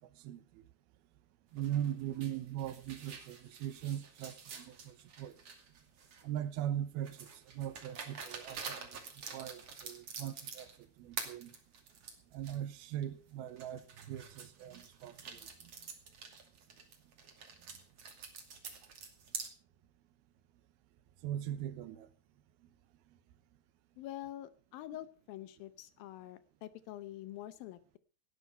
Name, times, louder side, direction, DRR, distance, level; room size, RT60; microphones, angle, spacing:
voice 1, 0.2-0.6 1.5-5.4 6.2-9.0 9.3-11.5 12.3-15.7 21.2-22.1, right 11 dB, 80° right, 2.8 m, -40 dB
sound 1, 1.6-6.4 7.0-10.8 11.1-12.6 13.0-13.1 13.6-19.5, right 5 dB, 45° right, 3.3 m, -47 dB
voice 2, 24.0-28.0, left 14 dB, 75° left, 2.5 m, -46 dB
17.5 x 11.0 x 5.5 m
omnidirectional pair, 4.5 m